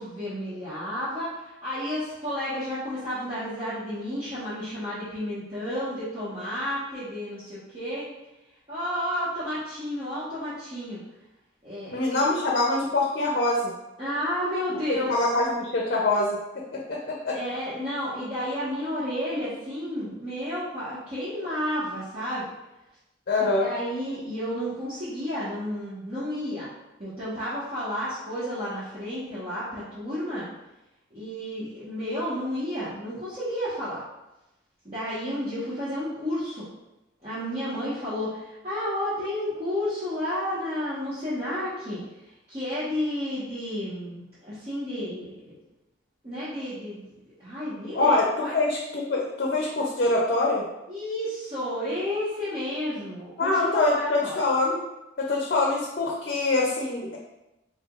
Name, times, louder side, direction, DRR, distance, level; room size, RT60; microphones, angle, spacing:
voice 1, 0.0-8.1 8.7-11.0 11.6-11.9 14.0-15.3 17.3-22.4 23.6-26.7 27.0-30.5 31.1-34.0 34.8-36.6 37.2-42.0 42.5-45.6 46.2-48.5 50.9-54.4, equal, 35° right, -13 dB, 1.2 m, -31 dB
voice 2, 11.9-13.7 14.9-16.4 16.9-17.3 23.3-23.7 47.9-50.6 53.4-54.8 55.2-57.2, left 2 dB, 55° left, -2 dB, 0.6 m, -24 dB
4.3 x 3.3 x 2.4 m, 0.95 s
head